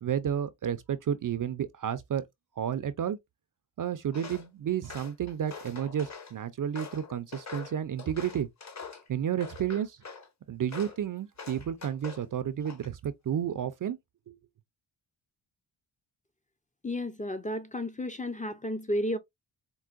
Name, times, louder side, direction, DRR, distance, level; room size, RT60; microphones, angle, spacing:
voice 1, 0.0-2.2 2.6-3.2 3.8-8.5 9.1-10.0 10.5-14.0 14.3-14.4, right 9 dB, 45° right, 0.4 m, -31 dB
Walk footsteps, 4.1-4.5 4.8-6.3 6.7-9.1 9.4-10.3 10.7-11.0 11.4-12.3 12.6-13.1, left 5 dB, 35° left, 1.0 m, -44 dB
voice 2, 16.8-19.2, left 1 dB, 15° left, 0.5 m, -32 dB
4.6 x 2.1 x 2.4 m
cardioid pair, 70°, 47 cm